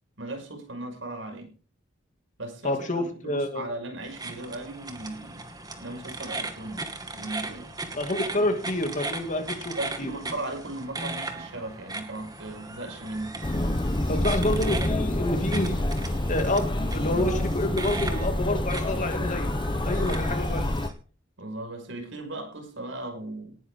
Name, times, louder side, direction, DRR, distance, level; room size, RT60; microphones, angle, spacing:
voice 1, 0.2-1.5 2.4-5.4 5.8-6.9 7.1-7.7 9.8-13.4 21.4-23.6, right 2 dB, 80° right, 3 dB, 5.8 m, -37 dB
voice 2, 2.6-3.7 7.9-10.1 14.1-15.8 16.3-19.5 19.8-20.7, left 1 dB, 40° left, 6 dB, 2.6 m, -28 dB
sound 1, 4.0-20.9, right 3 dB, 20° right, 2.2 m, -38 dB
sound 2, 13.4-20.9, left 1 dB, 25° left, 1.0 m, -27 dB
19.0 x 10.5 x 3.9 m, 0.38 s
head